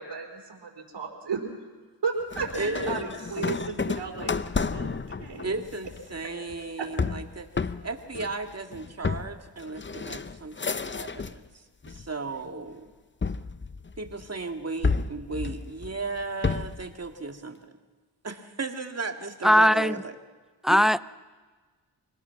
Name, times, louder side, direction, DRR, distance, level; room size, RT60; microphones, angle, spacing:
voice 1, 0.0-1.4 2.0-4.3 4.7-4.9 5.2-5.6 6.8-6.9, right 5 dB, 75° right, 0 dB, 4.2 m, -33 dB
sound 1, 2.3-11.5 11.8-12.5 13.2-14.3 14.8-16.9, left 4 dB, 30° left, 0.8 m, -31 dB
voice 2, 2.5-3.1 5.4-11.4 11.9-12.9 14.0-17.7 18.2-20.2 20.7-20.9, right 3 dB, 35° right, 5 dB, 2.2 m, -35 dB
voice 3, 19.4-20.0 20.6-21.0, equal, ahead, 17 dB, 0.6 m, -19 dB
25.5 x 19.5 x 5.9 m, 1.3 s
cardioid pair, 50°, 41 cm